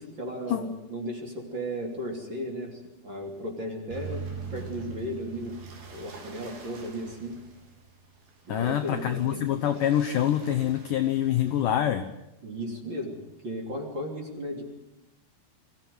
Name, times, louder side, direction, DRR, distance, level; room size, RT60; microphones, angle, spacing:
voice 1, 0.0-4.2 4.5-5.6 5.9-7.4 8.5-9.4 12.4-13.2 13.4-14.6, equal, 30° right, 1 dB, 3.4 m, -35 dB
sound 1, 3.9-11.6, right 5 dB, 85° right, 5.8 m, -43 dB
voice 2, 8.5-12.1, left 11 dB, 70° left, 7 dB, 2.1 m, -25 dB
24.0 x 15.5 x 9.6 m, 0.92 s
omnidirectional pair, 4.9 m